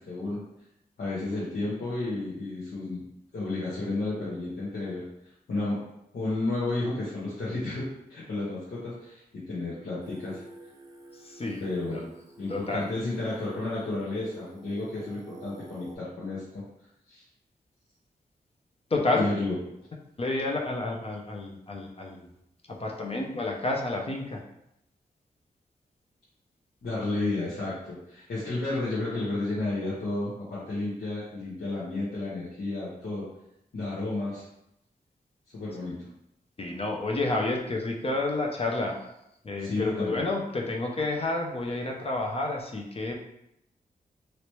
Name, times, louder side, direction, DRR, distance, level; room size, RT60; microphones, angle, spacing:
voice 1, 0.1-0.4 1.0-3.0 3.3-5.1 5.5-5.8 6.1-10.4 11.6-12.1 12.4-16.6 17.1-17.2 19.1-19.6 26.8-33.3 33.7-34.4 35.5-36.1 39.6-40.2, left 2 dB, 85° left, -10 dB, 1.1 m, -32 dB
Singing, 10.0-16.0, right 2 dB, 20° right, 0.6 m, -49 dB
voice 2, 11.1-11.6 11.9-12.0 12.5-12.8 18.9-19.2 20.2-22.3 22.7-24.4 36.6-38.9 39.4-43.1, left 2 dB, 35° left, 0 dB, 0.5 m, -30 dB
3.0 x 3.0 x 3.0 m, 0.81 s
wide cardioid pair, 105°, 16 cm